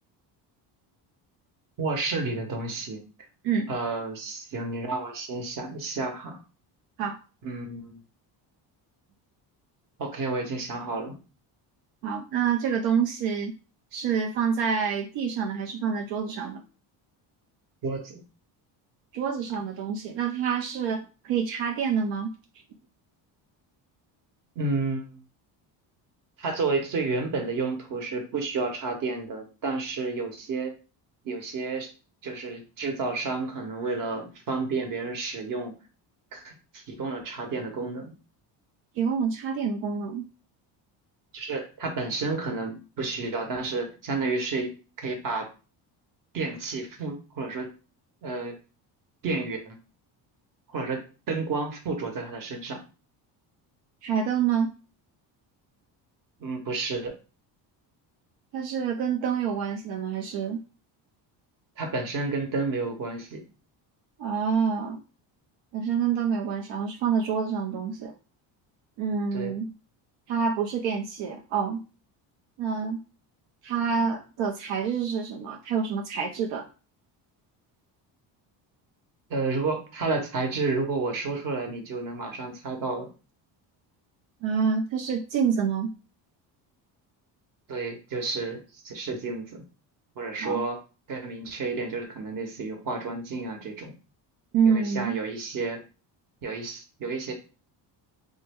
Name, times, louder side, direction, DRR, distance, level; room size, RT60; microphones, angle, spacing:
voice 1, 1.8-3.0 3.7-6.4 7.4-8.0 10.0-11.2 17.8-18.2 24.5-25.2 26.4-30.7 31.2-31.9 32.2-35.8 36.3-38.2 41.3-44.7 45.0-45.5 46.3-47.7 48.2-48.6 49.2-49.7 50.7-52.8 56.4-57.1 61.8-63.4 69.3-69.5 79.3-83.1 87.7-89.6 90.1-90.8 91.1-93.9 94.6-95.8 96.4-97.3, right 3 dB, 50° right, 4 dB, 1.0 m, -31 dB
voice 2, 12.0-13.5 13.9-16.6 19.1-22.3 39.0-40.3 54.0-54.7 58.5-60.6 64.2-65.0 65.7-68.1 69.0-69.7 70.3-71.8 72.6-73.0 73.6-76.7 84.4-85.9 90.4-90.6 94.5-95.2, right 6 dB, 85° right, 3 dB, 0.6 m, -27 dB
3.1 x 2.1 x 3.4 m, 0.34 s
cardioid pair, 120°, 44 cm